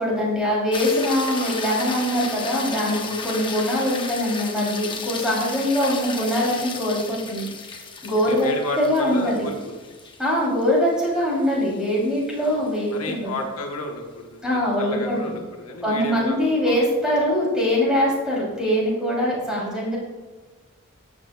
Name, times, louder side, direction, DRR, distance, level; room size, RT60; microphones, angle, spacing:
voice 1, 0.0-7.5 8.0-9.5 10.2-13.4 14.4-15.3 15.8-20.0, equal, 5° right, -6 dB, 2.9 m, -23 dB
sound 1, 0.7-13.1 17.6-17.7, left 4 dB, 20° left, 0.9 m, -34 dB
voice 2, 2.9-3.3 6.5-6.7 8.3-9.9 12.4-12.6 12.9-16.8, left 2 dB, 80° left, 2 dB, 1.1 m, -32 dB
13.0 x 7.5 x 2.2 m, 1.3 s
head